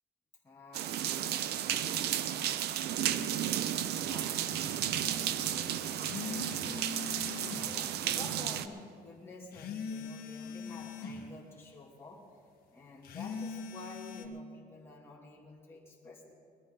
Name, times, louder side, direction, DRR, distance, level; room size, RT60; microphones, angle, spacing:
voice 1, 0.4-12.2 12.7-16.3, left 2 dB, 15° left, -5 dB, 2.6 m, -51 dB
sound 1, 0.7-8.7, right 11 dB, 75° right, 0.7 m, -33 dB
sound 2, 4.1-4.2 6.0-7.8 9.5-11.3 13.0-14.3, left 5 dB, 60° left, 1.5 m, -41 dB
21.0 x 13.5 x 3.9 m, 2.1 s
cardioid pair, 110°, 17 cm